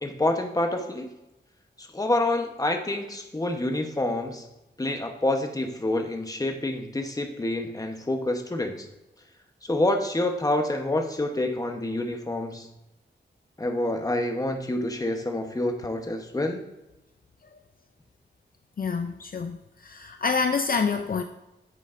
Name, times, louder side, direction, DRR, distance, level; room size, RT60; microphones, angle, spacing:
voice 1, 0.0-1.1 1.8-4.4 4.8-8.9 9.6-12.7 13.6-16.6, left 1 dB, 20° left, 4 dB, 1.0 m, -27 dB
voice 2, 18.8-19.6 19.8-21.2, left 5 dB, 50° left, 7 dB, 0.5 m, -27 dB
9.9 x 8.2 x 2.6 m, 0.96 s
wide cardioid pair, 130°, 19 cm